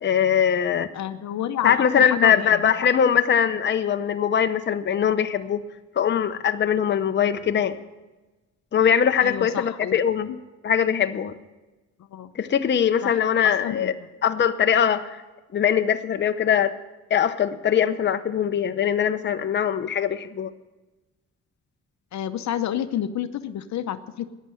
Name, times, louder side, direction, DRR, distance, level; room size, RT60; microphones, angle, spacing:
voice 1, 0.0-0.9 1.6-5.6 6.0-7.8 8.7-10.3 10.6-11.3 12.3-13.9 14.2-15.2 15.5-16.7 17.1-20.5, left 8 dB, 35° left, 8 dB, 0.8 m, -21 dB
voice 2, 0.9-2.7 9.2-10.0 10.3-10.4 12.1-12.3 13.0-13.9 22.1-24.3, left 10 dB, 65° left, 10 dB, 0.8 m, -30 dB
13.5 x 10.0 x 7.7 m, 1.1 s
cardioid pair, 90°, 30 cm